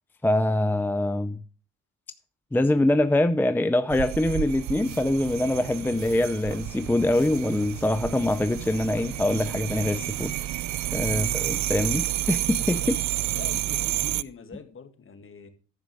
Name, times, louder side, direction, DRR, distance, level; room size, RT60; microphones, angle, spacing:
voice 1, 0.2-1.4 2.5-10.3 10.9-13.0, left 1 dB, 5° left, 0.5 m, -24 dB
sound 1, 3.9-14.2, right 15 dB, 70° right, 0.5 m, -30 dB
sound 2, 4.5-9.7, right 3 dB, 50° right, 4.5 m, -46 dB
voice 2, 11.1-11.4 12.8-13.0 13.3-15.5, left 5 dB, 45° left, 2.2 m, -44 dB
10.5 x 9.4 x 3.5 m
cardioid pair, 90°, 30 cm